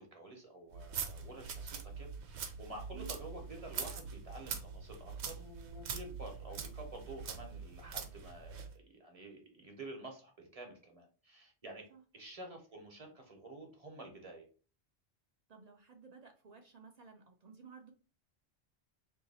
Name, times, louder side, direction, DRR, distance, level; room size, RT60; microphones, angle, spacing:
voice 1, 0.0-11.9 12.1-14.5, right 2 dB, 35° right, 2 dB, 0.9 m, -50 dB
sound 1, 0.7-8.7, right 6 dB, 80° right, 0.9 m, -43 dB
voice 2, 15.5-17.9, right 6 dB, 50° right, 3 dB, 0.5 m, -55 dB
2.9 x 2.7 x 4.0 m, 0.38 s
omnidirectional pair, 1.1 m